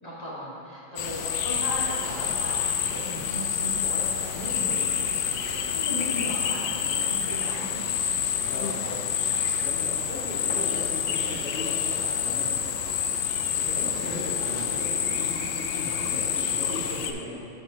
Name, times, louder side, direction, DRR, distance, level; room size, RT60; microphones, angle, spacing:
voice 1, 0.0-5.0 5.5-7.8 14.0-14.2, equal, 20° left, -9 dB, 1.8 m, -37 dB
sound 1, 1.0-17.1, left 8 dB, 75° left, 1.1 m, -28 dB
voice 2, 8.5-9.0 9.6-13.0 13.6-17.5, left 1 dB, 50° left, -10 dB, 1.7 m, -37 dB
11.5 x 6.5 x 2.8 m, 2.6 s
omnidirectional pair, 2.4 m